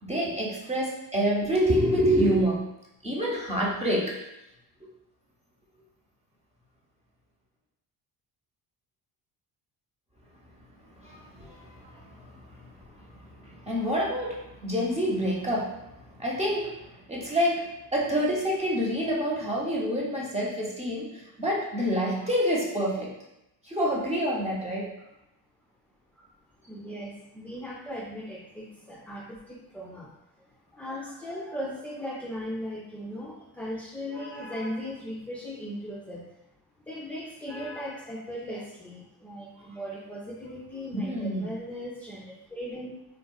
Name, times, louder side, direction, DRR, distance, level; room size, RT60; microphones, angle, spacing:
voice 1, 0.0-2.7 3.0-4.3 11.0-17.7 17.9-23.2 23.6-24.9 40.9-41.5, equal, 15° right, -3 dB, 0.8 m, -28 dB
voice 2, 26.6-30.1 30.7-36.3 36.8-43.0, equal, 5° left, -6 dB, 0.4 m, -38 dB
3.6 x 2.3 x 2.3 m, 0.86 s
cardioid pair, 75°, 43 cm